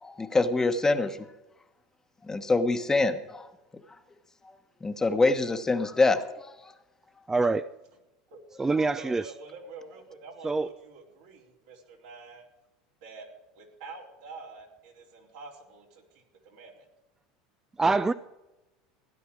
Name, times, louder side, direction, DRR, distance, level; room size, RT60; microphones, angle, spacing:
voice 1, 0.0-1.2 2.3-3.5 4.8-6.2, left 3 dB, 15° left, 7 dB, 1.2 m, -25 dB
voice 2, 7.3-7.7 8.6-9.2 10.4-10.7 17.8-18.1, right 3 dB, 15° right, 12 dB, 0.5 m, -25 dB
voice 3, 9.0-12.5 13.0-13.3 13.5-16.9, right 3 dB, 75° right, -2 dB, 4.0 m, -47 dB
16.5 x 10.5 x 4.7 m, 0.97 s
hypercardioid pair, 85°, 3 cm